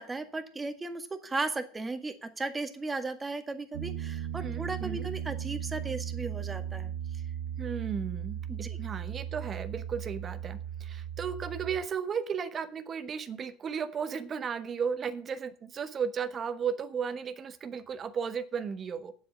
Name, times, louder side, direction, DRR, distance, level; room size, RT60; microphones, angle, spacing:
voice 1, 0.0-7.2 8.5-8.8, right 3 dB, 15° right, 7 dB, 1.8 m, -36 dB
Piano, 3.7-11.8, right 10 dB, 80° right, 1.3 m, -37 dB
voice 2, 4.4-5.1 7.6-8.4 8.8-19.1, right 6 dB, 35° right, 11 dB, 1.3 m, -34 dB
9.1 x 8.0 x 7.4 m, 0.43 s
supercardioid pair, 105°, 0 cm